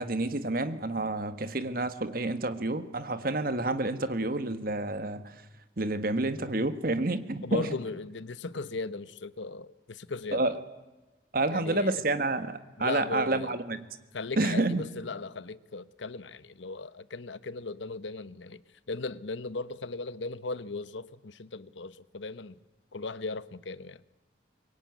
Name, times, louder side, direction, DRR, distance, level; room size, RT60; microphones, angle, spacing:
voice 1, 0.0-5.3 5.8-7.7 10.3-10.6 11.3-13.8 14.4-14.8, right 2 dB, 50° right, 1.5 m, -29 dB
voice 2, 7.4-10.6 11.5-12.0 12.8-13.5 14.1-18.6 18.9-22.6 22.9-24.0, left 3 dB, 80° left, 0.9 m, -37 dB
24.0 x 22.5 x 9.5 m
head